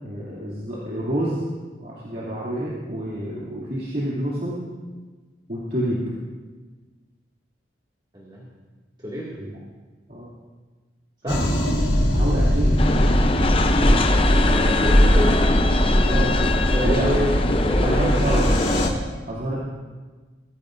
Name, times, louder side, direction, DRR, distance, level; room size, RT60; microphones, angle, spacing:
voice 1, 0.0-1.4 1.8-4.6 5.5-6.0 9.4-9.5 10.1-10.3 11.2-11.4 12.1-13.1 16.0-16.4 16.8-17.1 17.8-18.5 19.3-19.6, right 1 dB, 50° right, -8 dB, 2.7 m, -27 dB
voice 2, 8.1-8.5 9.0-9.4 11.2-11.5 14.1-15.6 16.7-17.4 17.6-18.8, equal, 25° right, -6 dB, 2.3 m, -28 dB
sound 1, 11.3-18.9, equal, 80° left, 3.4 m, -20 dB
sound 2, 12.8-18.9, left 2 dB, 30° left, 0.7 m, -23 dB
22.5 x 14.0 x 2.6 m, 1.4 s
head